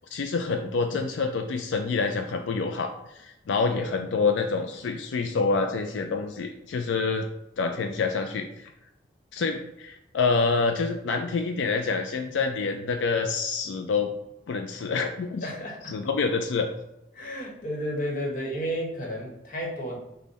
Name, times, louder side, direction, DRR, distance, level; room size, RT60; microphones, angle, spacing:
voice 1, 0.1-7.3 7.6-8.7 9.3-14.1 14.5-15.5 15.9-16.7, left 4 dB, 85° left, 5 dB, 0.4 m, -27 dB
voice 2, 15.4-16.0 17.1-20.0, equal, 45° left, -1 dB, 1.1 m, -32 dB
5.3 x 2.2 x 4.0 m, 0.88 s
head